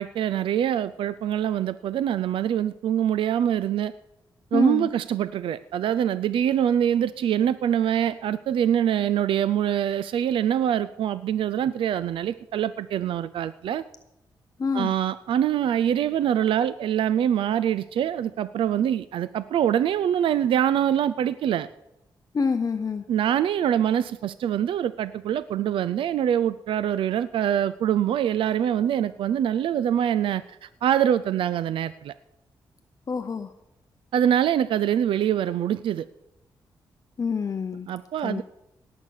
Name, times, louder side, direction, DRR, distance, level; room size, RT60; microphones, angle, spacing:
voice 1, 0.0-3.9 4.5-13.8 14.7-21.7 23.1-32.1 34.1-36.1 37.9-38.4, right 10 dB, 85° right, 14 dB, 0.4 m, -24 dB
voice 2, 4.5-4.9 14.6-14.9 22.3-23.0 33.1-33.5 37.2-37.9 38.2-38.4, left 5 dB, 45° left, 7 dB, 0.8 m, -26 dB
18.0 x 7.3 x 6.5 m, 0.88 s
cardioid pair, 90°, 9 cm